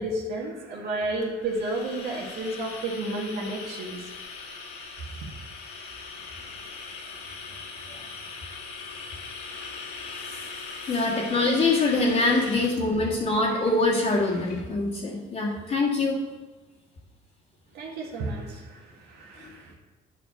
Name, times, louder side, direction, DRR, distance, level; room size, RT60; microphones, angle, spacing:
voice 1, 0.0-4.0 17.7-19.7, right 2 dB, 75° right, -2 dB, 1.8 m, -32 dB
sound 1, 1.2-14.6, left 4 dB, 75° left, 1.7 m, -40 dB
voice 2, 10.9-16.2, left 2 dB, 50° left, -7 dB, 1.8 m, -24 dB
10.5 x 5.2 x 5.6 m, 1.2 s
cardioid pair, 110°, 17 cm